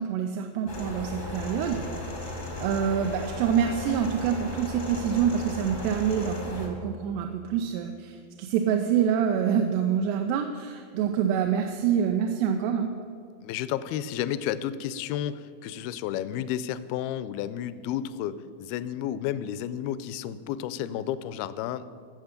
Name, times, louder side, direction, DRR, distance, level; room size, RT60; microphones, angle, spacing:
voice 1, 0.0-1.9 2.6-12.9, right 8 dB, 85° right, 4 dB, 2.7 m, -26 dB
sound 1, 0.7-6.7, left 2 dB, 60° left, 0.5 m, -36 dB
voice 2, 13.4-21.9, left 10 dB, 80° left, 14 dB, 2.3 m, -32 dB
14.0 x 7.5 x 6.6 m, 2.3 s
omnidirectional pair, 4.7 m